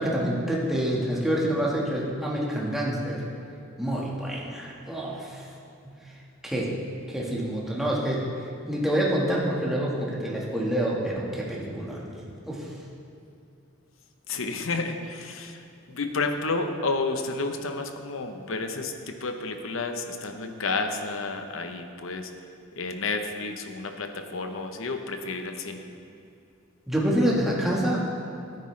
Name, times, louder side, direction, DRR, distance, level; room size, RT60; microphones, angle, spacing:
voice 1, 0.0-3.2 3.8-5.5 6.1-6.2 6.4-6.7 7.1-12.7 26.9-28.0, right 1 dB, ahead, -5 dB, 1.5 m, -27 dB
voice 2, 14.3-22.3 22.8-25.8, left 3 dB, 65° left, 6 dB, 0.8 m, -31 dB
13.5 x 9.5 x 3.3 m, 2.5 s
head